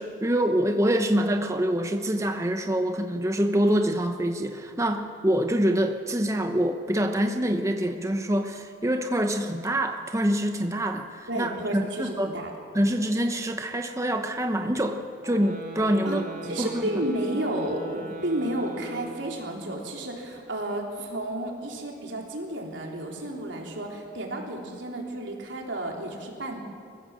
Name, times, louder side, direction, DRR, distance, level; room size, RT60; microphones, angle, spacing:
voice 1, 0.0-12.3 12.7-16.2 16.6-16.7, right 1 dB, 15° right, 5 dB, 0.9 m, -25 dB
voice 2, 11.3-12.5 16.0-26.6, right 1 dB, 85° right, 0 dB, 3.6 m, -32 dB
sound 1, 15.2-19.7, equal, 45° right, 3.8 m, -40 dB
24.5 x 15.5 x 7.5 m, 2.3 s
head